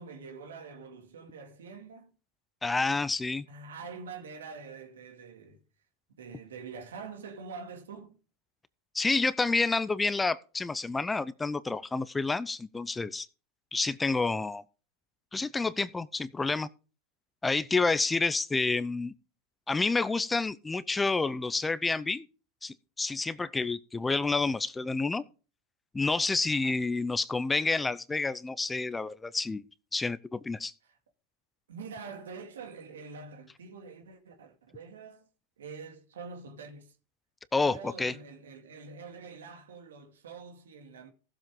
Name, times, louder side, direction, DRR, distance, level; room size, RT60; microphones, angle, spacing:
voice 1, 0.0-2.1 2.8-3.1 3.5-5.6 6.2-8.2 26.5-26.7 30.8-31.0 31.7-35.3 35.6-37.0 37.6-41.1, right 5 dB, 90° right, 2.4 m, -45 dB
voice 2, 2.6-3.5 8.9-13.3 13.7-14.6 15.3-16.7 17.4-19.1 19.7-22.2 22.6-25.2 25.9-29.6 29.9-30.7 37.5-38.1, left 3 dB, 10° left, 0.6 m, -29 dB
15.5 x 7.5 x 3.7 m
hypercardioid pair, 115°, 0 cm